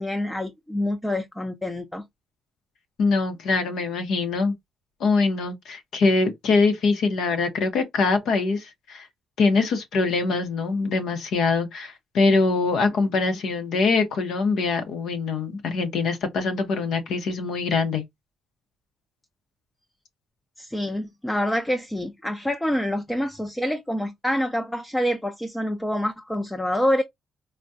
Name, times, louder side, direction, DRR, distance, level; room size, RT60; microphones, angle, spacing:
voice 1, 0.0-2.0 20.6-27.0, left 1 dB, 10° left, 0.5 m, -26 dB
voice 2, 3.0-4.5 5.0-9.1 9.4-18.0, left 4 dB, 75° left, 0.7 m, -23 dB
3.5 x 2.1 x 2.6 m
cardioid pair, 90°, 0 cm